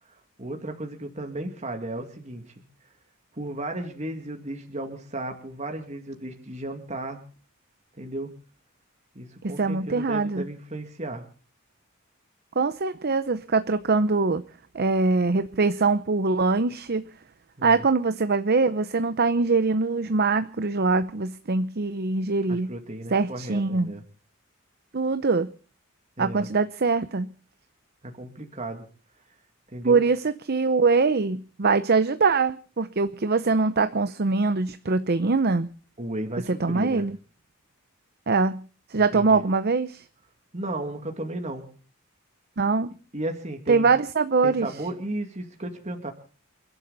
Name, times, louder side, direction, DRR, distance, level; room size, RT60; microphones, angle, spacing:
voice 1, 0.4-2.4 3.3-7.2 8.0-8.3 9.2-11.2 17.6-17.8 22.5-24.0 26.2-26.5 28.0-28.9 29.7-30.0 36.0-37.0 39.1-39.4 40.5-41.7 43.1-43.9 44.4-46.1, right 1 dB, 35° right, 4 dB, 2.3 m, -34 dB
voice 2, 9.4-10.5 12.6-14.4 14.7-17.1 17.6-22.7 23.1-23.9 24.9-25.5 26.2-27.3 29.8-35.7 36.5-37.2 38.3-40.0 42.6-43.0 43.7-44.8, right 4 dB, 50° right, 12 dB, 0.7 m, -23 dB
29.0 x 12.0 x 4.0 m, 0.40 s
head